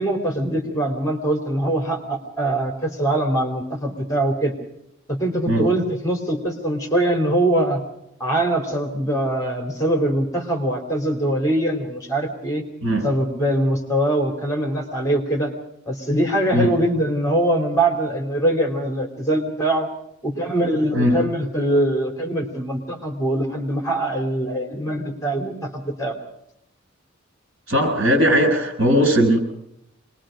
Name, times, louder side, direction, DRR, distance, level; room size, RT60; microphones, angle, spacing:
voice 1, 0.0-4.5 5.1-7.8 8.2-12.6 13.0-15.5 15.8-19.9 20.2-26.2, right 1 dB, 15° left, 3 dB, 3.0 m, -22 dB
voice 2, 27.7-29.4, equal, 60° right, 4 dB, 6.8 m, -18 dB
26.0 x 21.0 x 5.1 m, 0.77 s
head